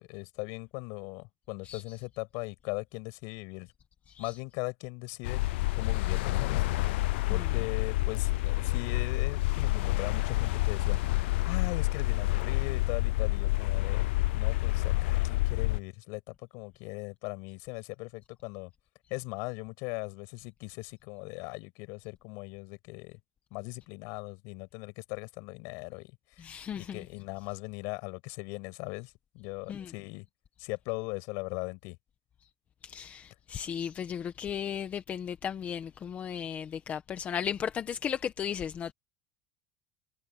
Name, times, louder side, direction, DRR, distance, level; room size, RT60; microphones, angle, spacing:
voice 1, 0.0-3.7 4.2-5.4 5.7-7.0 7.3-18.7 19.1-23.2 23.5-26.1 26.8-30.3 30.6-32.0, left 30 dB, 60° left, 8.0 m, -39 dB
sound 1, 5.2-15.8, left 18 dB, 85° left, 0.5 m, -28 dB
voice 2, 26.4-27.0 29.7-29.9 32.8-38.9, left 8 dB, 25° left, 1.2 m, -35 dB
cardioid pair, 160°, 6 cm